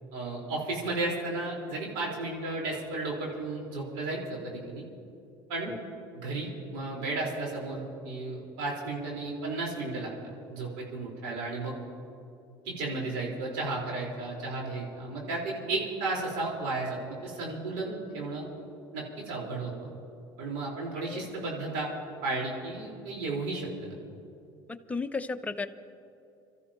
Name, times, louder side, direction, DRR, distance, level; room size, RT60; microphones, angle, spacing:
voice 1, 0.1-4.8 5.5-5.7 6.1-10.1 10.5-11.7 12.6-18.5 18.9-19.7 20.4-21.9 22.2-24.0, right 2 dB, 80° right, -3 dB, 4.5 m, -33 dB
voice 2, 21.0-21.3 24.9-25.7, left 4 dB, 10° left, 7 dB, 0.8 m, -34 dB
27.5 x 14.0 x 3.0 m, 2.7 s
supercardioid pair, 90°, 11 cm